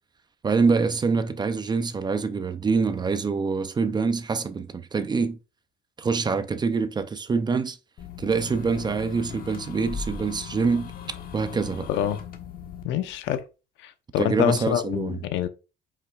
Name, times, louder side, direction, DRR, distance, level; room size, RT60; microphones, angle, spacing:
voice 1, 0.4-5.4 6.0-7.8 8.2-10.9 11.3-11.9 14.2-15.2, right 4 dB, 20° right, 0.6 m, -25 dB
sound 1, 8.0-12.8, left 6 dB, 50° left, 1.3 m, -38 dB
voice 2, 11.9-12.2 12.8-13.4 13.8-15.5, left 10 dB, 75° left, 0.9 m, -26 dB
7.9 x 5.7 x 2.4 m
cardioid pair, 125°, 19 cm